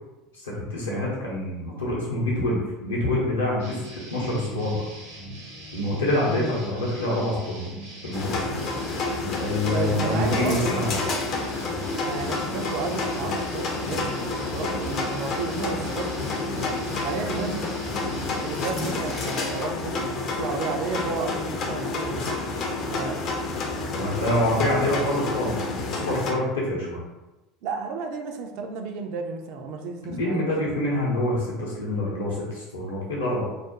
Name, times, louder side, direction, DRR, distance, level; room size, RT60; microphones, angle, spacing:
voice 1, 0.4-4.8 5.7-7.7 8.0-8.4 9.4-11.2 23.9-27.0 30.1-33.4, left 1 dB, 80° left, -5 dB, 0.7 m, -26 dB
sound 1, 3.6-19.6, right 1 dB, 75° right, 0.8 m, -41 dB
sound 2, 8.1-26.3, left 3 dB, 45° left, 0.4 m, -29 dB
voice 2, 9.7-10.9 12.0-17.7 18.4-22.5 22.9-23.2 27.6-30.7, right 4 dB, 55° right, 4 dB, 0.3 m, -32 dB
2.4 x 2.0 x 2.8 m, 1.0 s
figure-of-eight pair, 75°, 0 cm